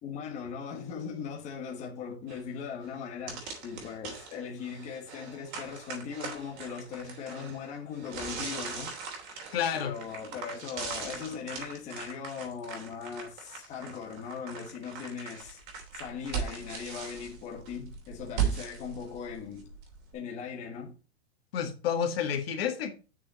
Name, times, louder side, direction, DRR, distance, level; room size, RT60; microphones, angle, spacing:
voice 1, 0.0-8.9 9.7-15.6 15.9-19.7 20.1-20.9, left 6 dB, 20° left, 1.5 m, -39 dB
sound 1, 2.3-2.4 2.9-3.0 3.3-20.1, right 7 dB, 45° right, 3.1 m, -39 dB
voice 2, 9.5-9.9 21.5-22.9, left 8 dB, 60° left, 1.8 m, -29 dB
7.6 x 6.3 x 4.2 m
supercardioid pair, 170°, 33 cm